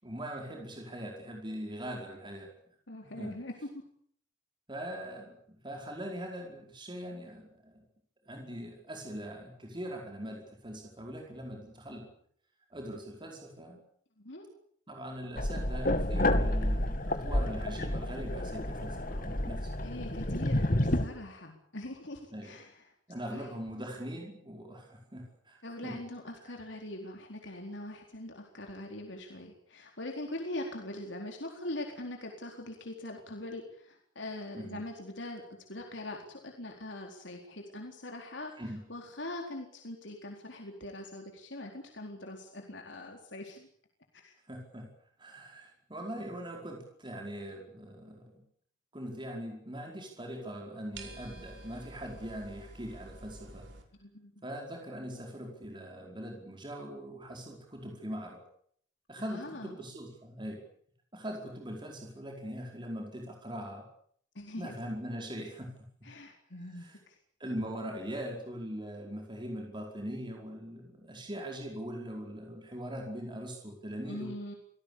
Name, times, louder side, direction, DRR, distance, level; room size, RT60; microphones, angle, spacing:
voice 1, 0.0-2.5 3.0-3.3 4.7-5.4 5.6-7.8 8.3-12.1 12.7-13.8 14.9-19.9 22.3-22.6 23.1-26.0 34.5-34.8 38.6-38.8 44.5-44.9 45.2-48.4 48.9-53.7 54.4-58.4 59.1-60.6 61.1-63.9 64.6-65.7 66.8-67.0 67.4-74.3, equal, 25° right, 1 dB, 4.9 m, -41 dB
voice 2, 2.9-3.7 14.2-14.5 19.8-22.9 23.3-23.5 25.6-35.4 35.7-43.7 44.1-44.3 54.0-54.4 59.3-59.8 64.3-64.7 66.0-67.2 74.0-74.5, left 1 dB, 70° left, 2 dB, 4.2 m, -42 dB
sound 1, 15.4-21.0, left 1 dB, 45° left, 2.4 m, -30 dB
sound 2, 50.9-53.8, right 2 dB, 70° right, 5.5 m, -49 dB
26.5 x 18.5 x 8.7 m, 0.64 s
head